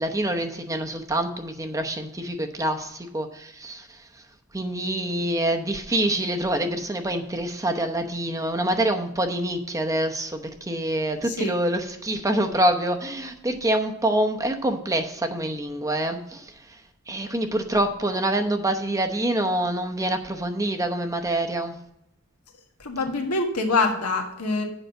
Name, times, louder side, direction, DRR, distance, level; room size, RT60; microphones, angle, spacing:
voice 1, 0.0-4.2 4.5-16.8 17.1-21.8, right 1 dB, 15° right, 4 dB, 0.8 m, -26 dB
voice 2, 22.8-24.6, left 3 dB, 90° left, 2 dB, 1.7 m, -25 dB
8.0 x 5.6 x 7.6 m, 0.80 s
head